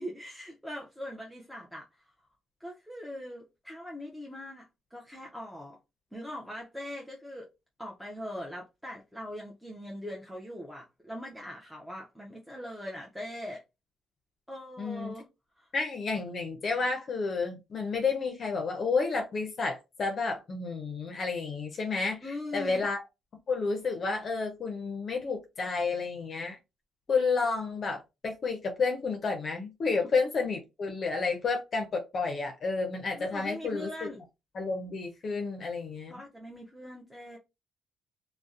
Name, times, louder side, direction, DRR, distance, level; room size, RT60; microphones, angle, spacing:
voice 1, 0.0-1.9 2.6-5.8 6.1-7.5 7.8-13.6 14.5-15.3 15.6-15.7 22.2-22.9 33.1-34.2 36.1-37.4, left 1 dB, ahead, 0.5 m, -41 dB
voice 2, 14.8-15.2 15.7-23.0 23.5-26.6 27.1-34.1 34.5-36.1, left 4 dB, 50° left, 0.5 m, -31 dB
2.5 x 2.0 x 2.4 m
cardioid pair, 90°, 0 cm